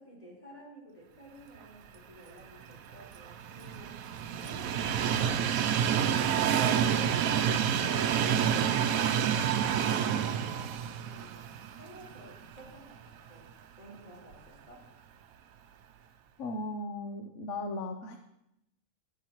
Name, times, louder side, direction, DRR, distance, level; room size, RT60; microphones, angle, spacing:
voice 1, 0.0-7.3 7.7-14.9, equal, 25° left, -6 dB, 4.2 m, -53 dB
Train, 2.6-12.7 13.1-13.2 14.3-14.4, right 8 dB, 85° right, 1.0 m, -28 dB
voice 2, 16.4-18.2, left 2 dB, 65° left, 4 dB, 1.1 m, -37 dB
22.0 x 7.3 x 3.0 m, 0.86 s
omnidirectional pair, 1.4 m